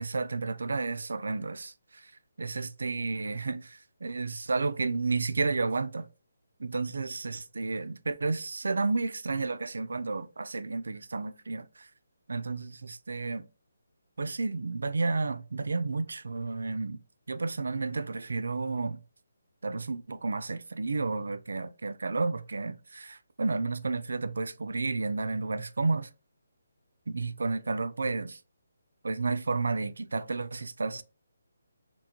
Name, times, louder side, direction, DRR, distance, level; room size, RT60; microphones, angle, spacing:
voice 1, 0.0-2.0 2.4-6.1 6.6-11.9 12.3-13.4 14.2-17.0 17.3-19.0 19.6-26.1 27.1-28.4 29.0-31.0, right 3 dB, 75° right, 0.4 m, -31 dB
4.3 x 2.8 x 2.9 m
hypercardioid pair, 175°, 0 cm